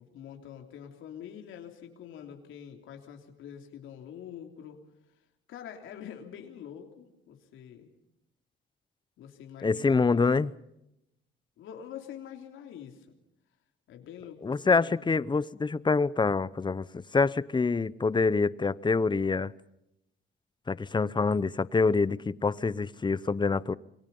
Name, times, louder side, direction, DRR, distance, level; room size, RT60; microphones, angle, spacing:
voice 1, 0.0-4.8 5.5-7.9 9.2-10.2 11.6-13.1 13.9-15.1, left 9 dB, 85° left, 3 dB, 3.3 m, -45 dB
voice 2, 9.6-10.5 14.4-19.5 20.7-23.7, left 4 dB, 25° left, 19 dB, 0.8 m, -26 dB
27.5 x 23.5 x 5.5 m, 0.85 s
cardioid pair, 90°, 20 cm